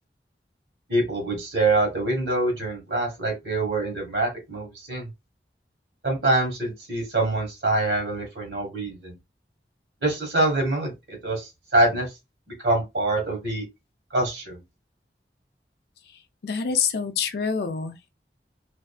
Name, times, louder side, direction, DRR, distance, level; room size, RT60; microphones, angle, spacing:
voice 1, 0.9-5.1 6.0-9.1 10.0-12.1 12.6-13.6 14.1-14.6, right 2 dB, 85° right, 1.2 m, -25 dB
voice 2, 16.4-18.1, left 6 dB, 65° left, 0.4 m, -26 dB
2.5 x 2.4 x 2.3 m
head